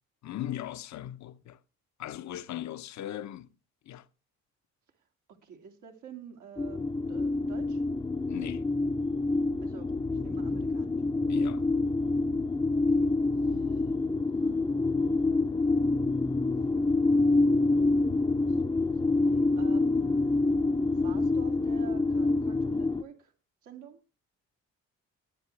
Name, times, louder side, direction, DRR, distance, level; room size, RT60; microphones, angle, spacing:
voice 1, 0.2-1.6 2.0-3.5 3.9-4.1 8.3-8.7 11.3-11.6, left 12 dB, 65° left, 0.9 m, -38 dB
voice 2, 5.3-7.8 9.6-11.0 12.7-13.1 13.4-13.9 14.4-14.8 16.4-16.6 16.9-17.3 18.1-23.3 23.6-24.0, right 7 dB, 80° right, 2.4 m, -50 dB
sound 1, 6.6-23.0, left 3 dB, 15° left, 0.6 m, -27 dB
20.0 x 9.2 x 3.2 m
cardioid pair, 90°, 30 cm